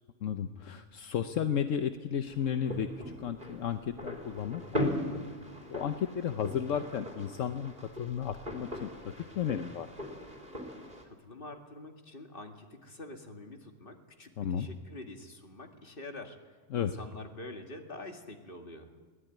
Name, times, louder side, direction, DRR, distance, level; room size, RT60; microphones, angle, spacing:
voice 1, 0.2-4.9 5.7-7.7 8.0-8.9 9.3-9.9 14.4-14.7 16.7-16.9, left 8 dB, 80° left, 8 dB, 1.2 m, -33 dB
sound 1, 2.3-11.0, equal, 40° right, 3.6 m, -40 dB
voice 2, 11.0-18.9, left 2 dB, 45° left, 4 dB, 2.3 m, -46 dB
22.0 x 17.5 x 9.2 m, 1.4 s
omnidirectional pair, 1.3 m